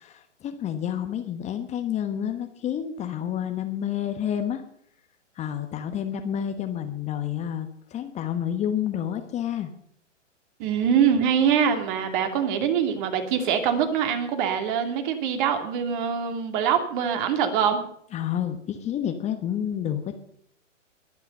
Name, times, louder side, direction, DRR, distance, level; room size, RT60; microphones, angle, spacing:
voice 1, 0.0-4.6 5.4-9.7 18.1-20.2, left 9 dB, 20° left, 7 dB, 1.1 m, -29 dB
voice 2, 10.6-17.8, right 8 dB, 40° right, 6 dB, 2.8 m, -24 dB
21.5 x 8.2 x 5.5 m, 0.67 s
hypercardioid pair, 130°, 38 cm